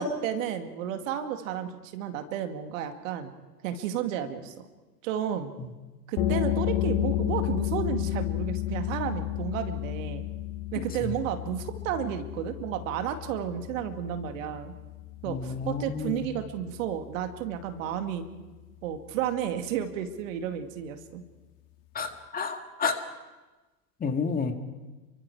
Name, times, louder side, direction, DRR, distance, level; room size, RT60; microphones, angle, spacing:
voice 1, 0.0-3.3 3.6-4.5 5.0-5.5 6.1-10.2 10.7-14.7 15.2-18.2 18.8-21.2, right 9 dB, 50° right, 7 dB, 2.3 m, -32 dB
sound 1, 6.2-17.5, left 14 dB, 35° left, 1.9 m, -32 dB
voice 2, 15.3-16.3 22.0-22.9 24.0-24.5, left 5 dB, 15° left, 6 dB, 1.9 m, -30 dB
29.5 x 23.5 x 4.9 m, 1.2 s
figure-of-eight pair, 105°, 50 cm